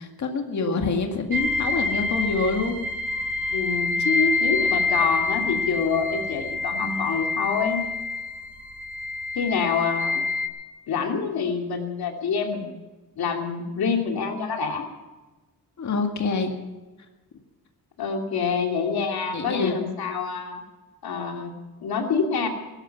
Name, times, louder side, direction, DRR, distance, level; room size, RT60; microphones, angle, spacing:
voice 1, 0.0-2.8 4.0-4.4 15.8-16.5 19.3-19.8, left 4 dB, 50° left, 3 dB, 2.0 m, -26 dB
sound 1, 1.3-10.5, left 3 dB, 85° right, 3.3 m, -27 dB
voice 2, 3.5-3.9 4.4-7.8 9.3-10.2 10.9-12.7 13.2-14.8 18.0-20.6 21.0-21.5 21.8-22.5, left 5 dB, 80° left, 3 dB, 2.7 m, -26 dB
20.5 x 11.5 x 5.8 m, 1.2 s
wide cardioid pair, 165°, 37 cm